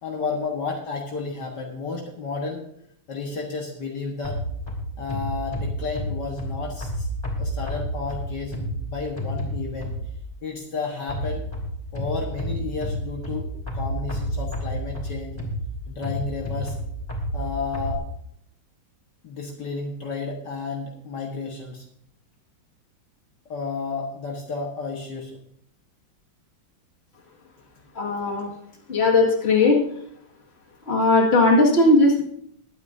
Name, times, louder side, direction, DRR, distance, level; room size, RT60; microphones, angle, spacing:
voice 1, 0.0-2.6 3.1-4.4 5.0-7.1 7.4-9.9 10.4-11.4 11.9-13.5 13.7-15.4 15.9-16.8 17.3-18.1 19.2-21.8 23.5-25.4 28.3-28.4, left 4 dB, 60° left, 0 dB, 2.1 m, -32 dB
sound 1, 4.2-10.3 11.1-17.9, equal, 15° left, 2.8 m, -30 dB
voice 2, 28.0-28.5 28.9-29.8 30.9-32.2, left 2 dB, 35° left, 0 dB, 2.2 m, -18 dB
22.0 x 9.0 x 2.7 m, 0.69 s
omnidirectional pair, 2.1 m